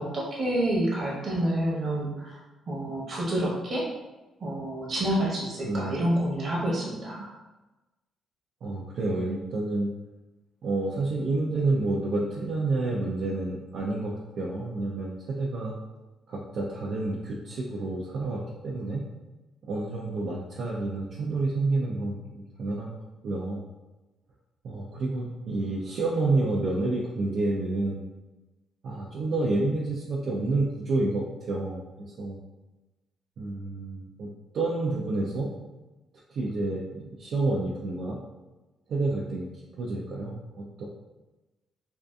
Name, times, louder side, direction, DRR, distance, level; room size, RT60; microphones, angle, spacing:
voice 1, 0.0-2.4 2.7-3.9 4.4-7.3, right 1 dB, 45° right, -4 dB, 0.9 m, -28 dB
voice 2, 5.6-6.0 8.6-9.9 10.6-15.7 16.3-19.0 19.7-23.0 23.2-23.6 24.6-28.0 28.8-32.4 33.4-35.5 36.3-38.2 38.9-39.5 39.8-40.8, right 2 dB, 65° right, -4 dB, 0.4 m, -29 dB
2.6 x 2.4 x 2.3 m, 1.1 s
cardioid pair, 90°, 0 cm